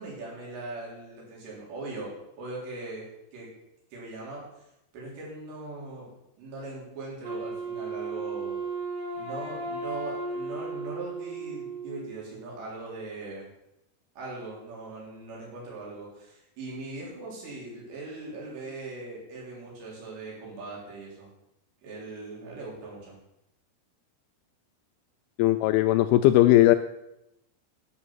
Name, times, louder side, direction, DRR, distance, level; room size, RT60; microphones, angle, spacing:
voice 1, 0.0-3.5 3.9-4.6 4.9-6.1 6.4-8.6 9.1-13.5 14.2-21.3 21.8-23.2, right 2 dB, 80° right, -5 dB, 6.0 m, -40 dB
Wind instrument woodwind instrument, 7.2-12.2, right 3 dB, 60° right, 3.6 m, -35 dB
voice 2, 25.4-26.8, left 15 dB, 85° left, 10 dB, 2.3 m, -18 dB
11.5 x 7.1 x 6.2 m, 0.85 s
omnidirectional pair, 4.9 m